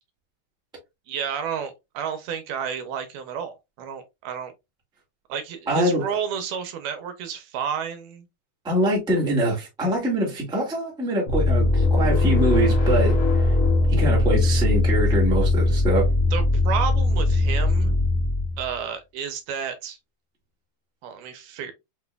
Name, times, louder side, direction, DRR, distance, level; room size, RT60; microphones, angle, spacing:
voice 1, 1.1-4.5 5.3-8.3 16.3-18.0 18.6-20.0 21.0-21.7, right 7 dB, 80° right, 2.2 m, -31 dB
voice 2, 5.7-6.0 8.6-13.5 13.9-16.1, right 1 dB, 5° right, 0.6 m, -24 dB
sound 1, 11.3-18.7, left 2 dB, 65° left, 1.4 m, -20 dB
5.9 x 3.0 x 2.2 m
omnidirectional pair, 3.7 m